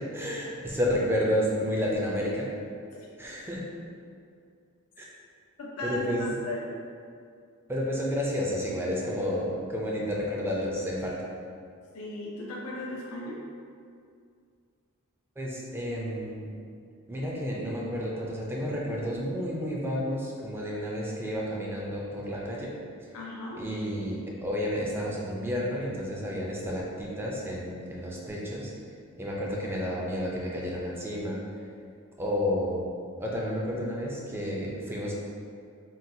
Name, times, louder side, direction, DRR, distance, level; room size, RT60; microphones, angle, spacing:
voice 1, 0.1-2.5 3.2-3.6 5.0-5.1 5.8-6.4 7.7-11.1 15.4-16.5 17.1-22.7 23.6-28.7 29.1-31.4 32.2-35.1, equal, 10° right, -4 dB, 0.4 m, -31 dB
voice 2, 5.6-6.7 11.9-13.4 23.1-23.6, left 2 dB, 80° left, -4 dB, 0.4 m, -36 dB
3.8 x 2.3 x 2.7 m, 2.3 s
head